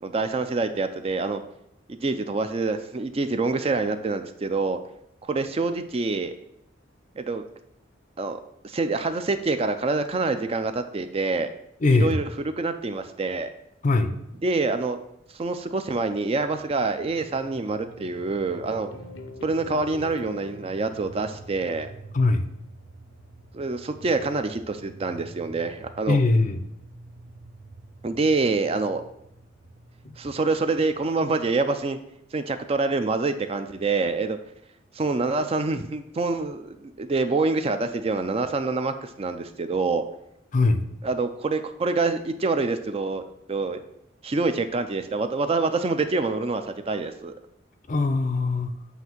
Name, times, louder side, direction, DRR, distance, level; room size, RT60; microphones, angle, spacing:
voice 1, 0.0-1.4 1.9-4.8 5.2-6.3 7.2-7.4 8.2-8.4 8.6-11.5 11.9-13.5 14.4-15.0 15.3-18.9 19.4-21.9 23.5-26.2 28.0-29.0 30.2-32.0 32.3-34.4 34.9-40.0 41.0-43.2 43.5-43.8 44.2-47.3, right 3 dB, 30° right, 9 dB, 0.4 m, -26 dB
voice 2, 11.8-12.2 13.8-14.1 22.1-22.4 26.1-26.6 30.0-30.1 40.5-40.8 47.9-48.7, left 3 dB, 40° left, 9 dB, 0.5 m, -21 dB
sound 1, 16.1-31.4, right 2 dB, 75° right, 0.7 m, -47 dB
sound 2, 16.9-22.3, left 3 dB, 80° left, 0.7 m, -46 dB
8.0 x 2.7 x 5.8 m, 0.78 s
head